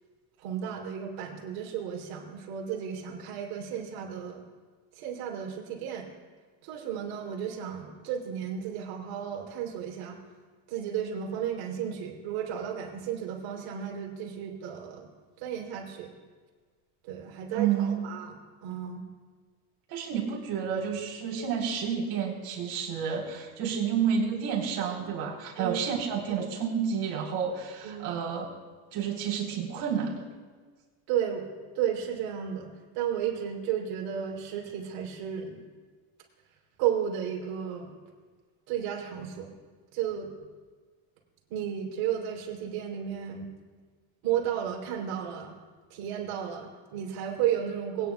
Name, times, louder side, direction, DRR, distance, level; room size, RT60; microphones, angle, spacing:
voice 1, 0.4-4.5 5.0-6.1 6.6-10.2 10.7-15.1 15.4-16.1 17.0-19.1 25.6-25.8 27.8-28.1 31.1-31.5 31.8-35.6 36.8-37.9 38.7-39.5 39.9-40.3 41.5-43.5 44.2-45.6 45.9-48.1, right 9 dB, 70° right, -1 dB, 3.5 m, -33 dB
voice 2, 17.5-18.1 19.9-28.5 28.9-30.2, right 7 dB, 50° right, -2 dB, 3.9 m, -30 dB
21.5 x 10.0 x 2.4 m, 1.5 s
supercardioid pair, 125°, 47 cm